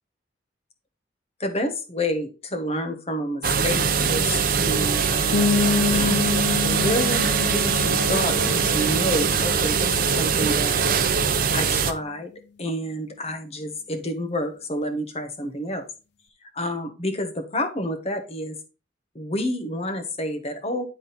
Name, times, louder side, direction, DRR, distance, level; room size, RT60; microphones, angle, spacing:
voice 1, 1.4-5.6 5.9-6.2 6.6-10.8 11.5-12.3 12.6-15.8 16.5-18.6 19.1-20.8, left 1 dB, 35° left, 6 dB, 1.2 m, -29 dB
sound 1, 3.4-11.9, right 6 dB, 50° right, 0.7 m, -22 dB
sound 2, 4.6-9.4, left 8 dB, 5° right, 1.0 m, -39 dB
sound 3, 5.3-10.9, left 5 dB, 65° left, 0.7 m, -28 dB
10.5 x 3.7 x 4.1 m, 0.32 s
head